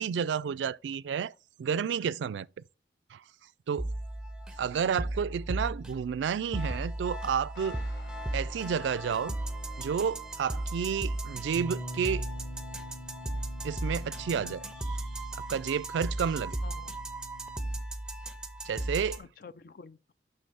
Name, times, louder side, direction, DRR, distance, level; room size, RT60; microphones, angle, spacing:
voice 1, 0.0-1.3 1.6-2.5 3.1-3.2 3.7-3.9 4.6-7.8 8.3-9.4 9.8-12.2 13.6-14.6 15.3-16.6 18.6-19.2, right 7 dB, 85° right, 0.3 m, -31 dB
sound 1, 3.8-19.2, right 1 dB, 5° right, 0.6 m, -36 dB
voice 2, 4.6-5.1 14.3-14.6 16.6-17.0 19.2-20.1, left 5 dB, 55° left, 0.4 m, -49 dB
sound 2, 7.5-15.3, left 2 dB, 70° left, 1.5 m, -55 dB
Bass guitar, 11.5-17.8, equal, 25° left, 1.1 m, -45 dB
7.7 x 5.8 x 3.5 m
head